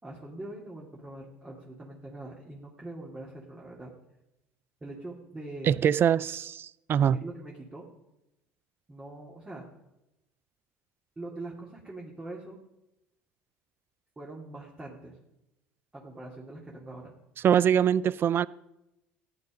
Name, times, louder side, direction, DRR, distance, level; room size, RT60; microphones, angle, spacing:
voice 1, 0.0-3.9 4.8-5.7 7.0-7.8 8.9-9.7 11.2-12.6 14.2-15.2 15.9-17.1, right 2 dB, 15° right, 2.8 m, -43 dB
voice 2, 5.6-7.2 17.4-18.5, right 9 dB, 40° right, 0.5 m, -23 dB
15.0 x 9.7 x 5.3 m
supercardioid pair, 90°, 6 cm